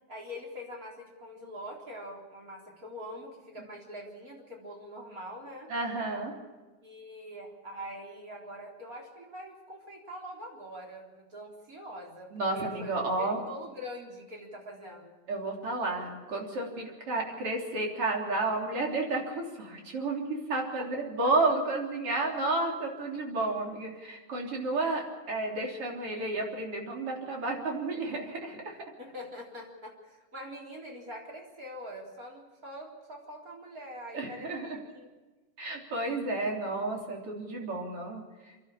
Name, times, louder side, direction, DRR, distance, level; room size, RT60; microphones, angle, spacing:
voice 1, 0.1-5.7 6.8-15.2 20.8-20.9 21.2-21.3 29.0-35.1, equal, 30° right, -1 dB, 4.1 m, -44 dB
voice 2, 5.7-6.3 12.3-13.4 15.3-28.8 34.1-34.8 35.6-38.7, right 2 dB, 50° right, 0 dB, 4.3 m, -31 dB
30.0 x 11.5 x 8.6 m, 1.2 s
omnidirectional pair, 3.4 m